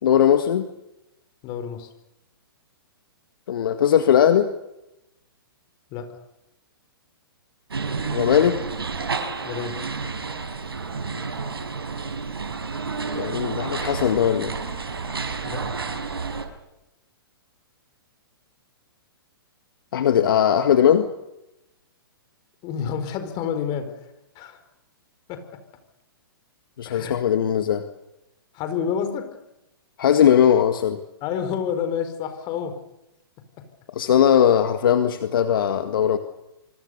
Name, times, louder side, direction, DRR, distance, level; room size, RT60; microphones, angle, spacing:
voice 1, 0.0-0.7 3.5-4.5 8.1-8.6 13.1-14.5 19.9-21.1 26.8-27.8 30.0-31.0 34.0-36.2, left 9 dB, 65° left, 8 dB, 1.9 m, -19 dB
voice 2, 1.4-1.9 5.9-6.1 9.4-9.8 15.4-15.6 22.6-23.9 24.3-24.6 25.3-25.6 26.8-27.2 28.5-29.3 31.2-32.8 33.6-33.7, left 7 dB, 35° left, 9 dB, 4.8 m, -29 dB
sound 1, 7.7-16.5, right 4 dB, 85° right, 5.3 m, -30 dB
26.5 x 25.0 x 6.8 m, 0.89 s
hypercardioid pair, 125°, 12 cm